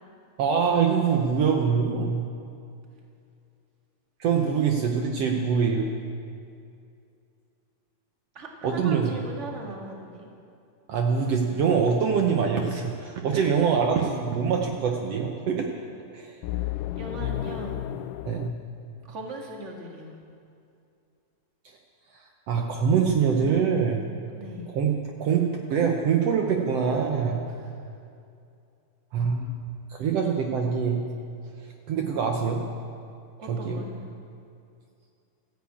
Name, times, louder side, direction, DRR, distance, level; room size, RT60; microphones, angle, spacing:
voice 1, 0.4-2.2 4.2-5.9 8.6-9.2 10.9-15.7 16.1-16.4 18.2-18.6 22.1-24.1 24.7-27.5 29.1-29.5 29.9-31.0 31.6-32.7 33.5-33.8, right 6 dB, 85° right, 2 dB, 1.4 m, -24 dB
voice 2, 8.3-10.3 13.3-13.5 16.5-17.8 19.1-20.1 24.3-24.7 27.5-27.7 33.4-34.0, right 2 dB, 30° right, 0 dB, 1.4 m, -39 dB
sound 1, 13.5-14.3 16.4-18.5, left 13 dB, 90° left, 1.8 m, -33 dB
14.5 x 10.5 x 8.5 m, 2.5 s
omnidirectional pair, 4.2 m